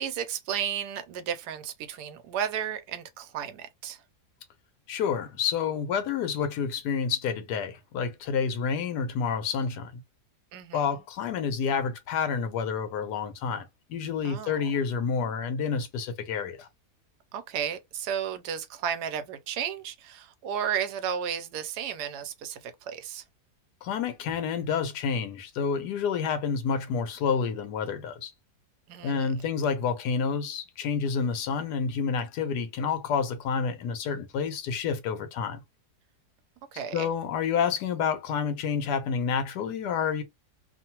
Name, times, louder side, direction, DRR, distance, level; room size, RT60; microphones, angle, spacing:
voice 1, 0.0-4.0 10.5-11.0 14.2-14.7 17.3-23.2 28.9-29.3 36.7-37.1, right 8 dB, 85° right, 1.2 m, -33 dB
voice 2, 4.9-9.9 10.7-16.7 23.8-28.3 29.0-35.6 36.9-40.2, left 6 dB, 90° left, 1.2 m, -29 dB
2.9 x 2.1 x 2.8 m
omnidirectional pair, 1.7 m